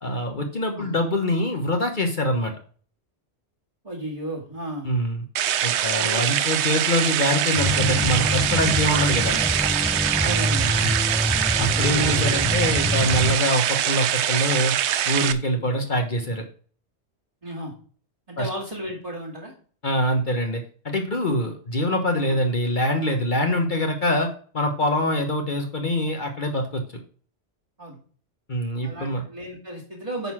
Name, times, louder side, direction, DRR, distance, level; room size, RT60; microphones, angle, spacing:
voice 1, 0.0-2.5 4.8-5.2 5.6-9.4 11.6-14.7 15.1-16.4 18.4-18.5 19.8-24.3 24.5-26.8 28.5-29.2, left 1 dB, 45° left, 4 dB, 1.2 m, -24 dB
voice 2, 3.8-4.9 5.9-6.2 10.2-10.8 11.8-12.3 17.4-17.7 18.3-19.5 22.2-22.4 27.8-28.0 28.8-30.3, right 1 dB, 30° right, -3 dB, 2.5 m, -34 dB
sound 1, 5.4-15.3, right 10 dB, 80° right, 0.9 m, -23 dB
sound 2, 7.6-13.4, left 1 dB, ahead, 0.4 m, -26 dB
sound 3, 8.9-9.7 10.8-11.4, left 1 dB, 25° left, 2.0 m, -47 dB
9.3 x 4.0 x 6.0 m, 0.42 s
omnidirectional pair, 1.1 m